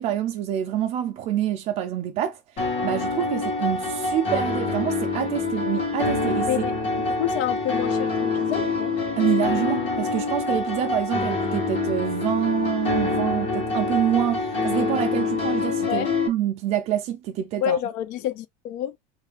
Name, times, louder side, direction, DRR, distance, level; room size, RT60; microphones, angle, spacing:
voice 1, 0.0-6.5 9.2-17.8, right 11 dB, 35° right, 0.4 m, -26 dB
sound 1, 2.6-16.3, left 3 dB, 35° left, 1.0 m, -26 dB
voice 2, 7.1-8.9 15.9-16.1 17.6-19.0, left 11 dB, 50° left, 0.4 m, -28 dB
3.2 x 2.4 x 3.5 m
cardioid pair, 180°, 18 cm